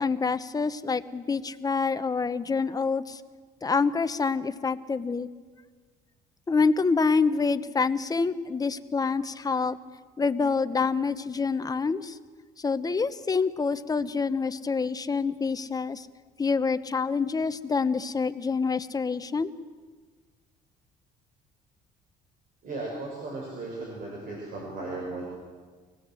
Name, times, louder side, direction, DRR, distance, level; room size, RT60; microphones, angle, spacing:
voice 1, 0.0-3.2 3.6-5.3 6.5-9.8 10.2-12.2 12.6-16.1 16.4-19.5, left 4 dB, 20° left, 11 dB, 1.0 m, -26 dB
voice 2, 22.6-25.3, right 2 dB, 55° right, -2 dB, 6.7 m, -36 dB
24.5 x 19.5 x 7.8 m, 1.5 s
cardioid pair, 110°, 17 cm